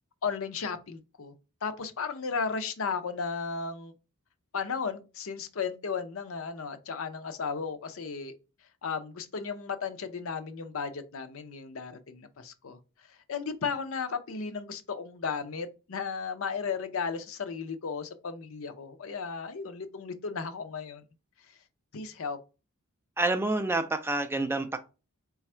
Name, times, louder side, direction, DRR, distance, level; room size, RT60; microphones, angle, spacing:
voice 1, 0.2-1.3 1.6-3.9 4.5-8.3 8.8-12.8 13.3-21.0 21.9-22.4, left 5 dB, 65° left, 0.6 m, -35 dB
voice 2, 23.2-24.8, right 2 dB, 10° right, 0.4 m, -28 dB
4.1 x 2.3 x 4.2 m
head